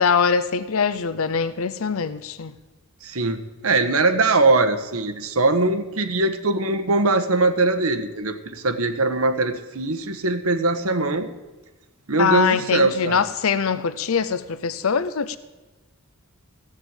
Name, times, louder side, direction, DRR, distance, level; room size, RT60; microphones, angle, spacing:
voice 1, 0.0-2.5 12.2-15.4, left 6 dB, 70° left, 0.6 m, -22 dB
voice 2, 3.0-11.3 12.1-13.2, right 3 dB, 80° right, 1.3 m, -21 dB
15.5 x 7.4 x 8.9 m
head